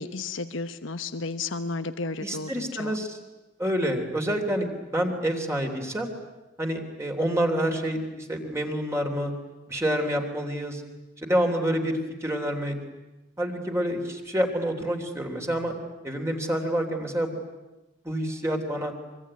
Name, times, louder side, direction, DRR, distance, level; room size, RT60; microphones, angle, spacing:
voice 1, 0.0-3.0, left 3 dB, 85° left, 11 dB, 1.1 m, -33 dB
voice 2, 2.2-3.2 3.6-6.1 6.6-9.3 9.7-10.8 11.2-12.8 13.4-15.7 16.0-17.4 18.0-18.9, equal, 15° right, 2 dB, 3.2 m, -28 dB
24.5 x 24.5 x 9.8 m, 1.1 s
head